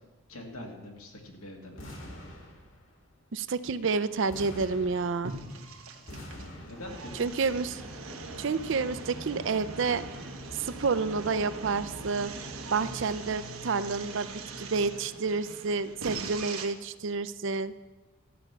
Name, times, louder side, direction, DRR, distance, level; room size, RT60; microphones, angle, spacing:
voice 1, 0.3-1.8 6.4-7.3, left 1 dB, 90° left, 1 dB, 2.1 m, -44 dB
sound 1, 1.8-3.0 4.3-5.6 6.1-7.2, left 1 dB, 65° left, 2.1 m, -45 dB
voice 2, 3.3-5.3 7.2-7.8 8.4-10.1 10.5-12.3 12.7-17.7, right 4 dB, 60° right, 13 dB, 0.5 m, -29 dB
sound 2, 3.6-16.7, right 3 dB, 85° right, 1.2 m, -42 dB
sound 3, 6.7-13.4, equal, ahead, 0.9 m, -48 dB
13.0 x 5.9 x 8.1 m, 1.2 s
head